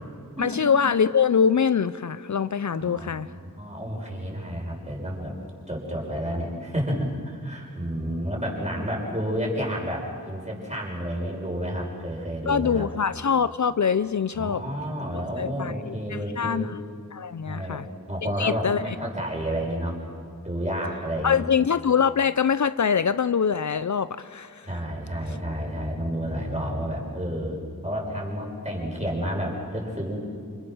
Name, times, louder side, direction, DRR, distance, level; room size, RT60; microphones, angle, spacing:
voice 1, 0.4-3.3 12.5-14.6 15.1-16.8 17.1-17.9 18.4-19.0 21.2-24.7, left 7 dB, 60° left, 14 dB, 0.5 m, -24 dB
voice 2, 2.7-5.3 5.7-12.9 14.3-16.7 17.4-17.8 18.1-20.0 20.4-21.4 24.6-30.2, equal, 20° right, -2 dB, 5.8 m, -30 dB
29.0 x 25.5 x 6.2 m, 2.3 s
wide cardioid pair, 75°, 33 cm